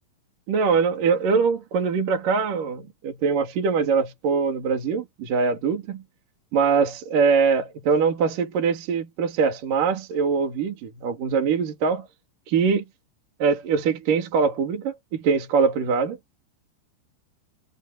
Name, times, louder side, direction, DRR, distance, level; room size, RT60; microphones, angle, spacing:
voice 1, 0.5-6.0 6.5-12.1 12.5-12.8 13.4-16.2, right 5 dB, 50° right, 3.9 m, -23 dB
omnidirectional pair, 5.3 m